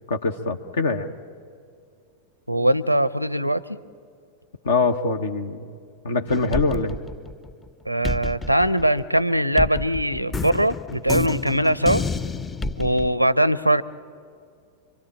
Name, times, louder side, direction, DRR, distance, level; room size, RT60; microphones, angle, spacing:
voice 1, 0.1-1.1 4.6-5.6 6.0-7.0, left 4 dB, 65° left, 6 dB, 1.0 m, -23 dB
voice 2, 2.5-3.8 7.9-12.0 12.8-13.8, right 1 dB, 90° right, 19 dB, 0.6 m, -21 dB
sound 1, 6.3-7.7 8.0-13.1, left 3 dB, 15° left, 0.6 m, -29 dB
26.0 x 24.0 x 8.7 m, 2.2 s
figure-of-eight pair, 90°, 0 cm